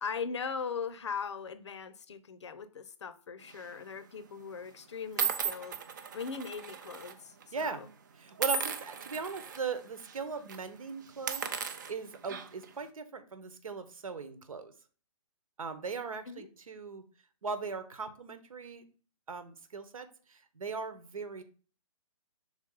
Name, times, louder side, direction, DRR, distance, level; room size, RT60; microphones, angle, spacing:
voice 1, 0.0-5.8 6.1-7.9 16.3-16.5, left 6 dB, 55° left, 0.7 m, -39 dB
sound 1, 3.5-3.8 4.5-4.6 5.2-7.1 7.4-7.6 8.4-9.6 10.0-10.2 10.5-10.6 11.1-12.7, right 6 dB, 35° right, 0.6 m, -36 dB
voice 2, 7.5-7.8 8.1-14.7 15.6-17.0 17.4-18.9 19.3-21.4, right 5 dB, 80° right, 1.2 m, -39 dB
6.0 x 4.0 x 3.9 m
hypercardioid pair, 170°, 18 cm